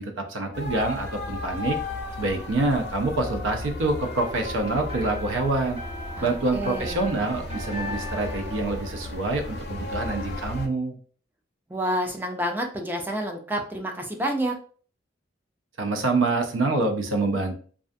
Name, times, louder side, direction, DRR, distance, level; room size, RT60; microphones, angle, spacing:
voice 1, 0.0-1.8 2.2-5.8 6.2-11.0 15.8-17.6, right 2 dB, 80° right, 4 dB, 0.5 m, -26 dB
sound 1, 0.5-10.7, left 2 dB, 60° left, 0.4 m, -35 dB
sound 2, 3.6-9.6, left 1 dB, 35° right, 1.1 m, -40 dB
voice 2, 6.2-7.0 11.7-14.5, right 1 dB, 10° right, 2 dB, 0.4 m, -29 dB
2.4 x 2.3 x 2.5 m, 0.44 s
head